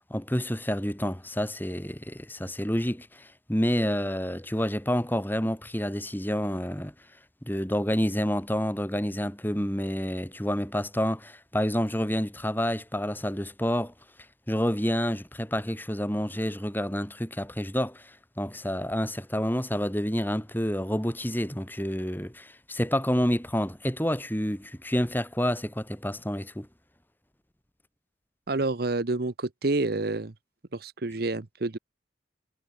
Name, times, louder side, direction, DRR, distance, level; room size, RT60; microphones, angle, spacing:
voice 1, 0.1-6.9 7.4-13.9 14.5-26.7, equal, 10° left, 4.8 m, -29 dB
voice 2, 28.5-30.3 30.7-31.8, right 2 dB, 55° right, 0.9 m, -28 dB
head